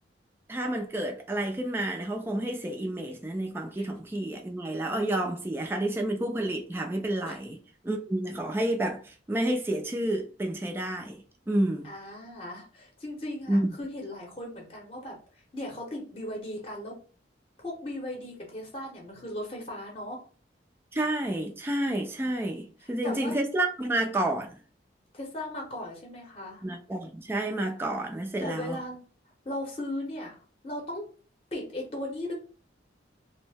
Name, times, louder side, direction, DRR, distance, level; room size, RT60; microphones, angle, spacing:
voice 1, 0.5-7.6 7.8-11.9 13.5-13.7 20.9-24.6 26.6-28.8, right 1 dB, 10° right, 0.3 m, -30 dB
voice 2, 11.8-17.0 17.6-20.2 22.8-23.3 25.1-26.7 28.4-29.0 29.4-30.4 30.6-31.1 31.5-32.3, left 1 dB, 30° left, 0.7 m, -37 dB
2.6 x 2.0 x 3.3 m
head